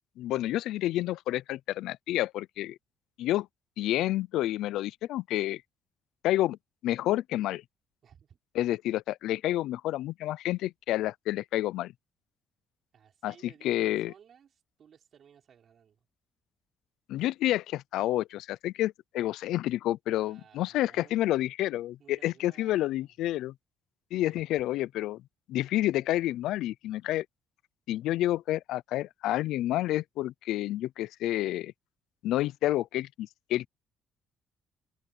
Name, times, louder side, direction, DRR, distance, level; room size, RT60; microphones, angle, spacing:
voice 1, 0.2-2.8 3.2-3.5 3.8-5.6 6.2-6.6 6.8-7.6 8.6-11.9 13.2-14.1 17.1-23.5 24.1-25.2 25.5-27.3 27.9-31.7 32.2-33.7, left 14 dB, 90° left, 0.5 m, -29 dB
voice 2, 8.0-8.4 12.9-16.1 20.1-21.2 22.0-23.1 24.3-24.4, right 8 dB, 50° right, 5.9 m, -58 dB
open air
cardioid pair, 115°, 0 cm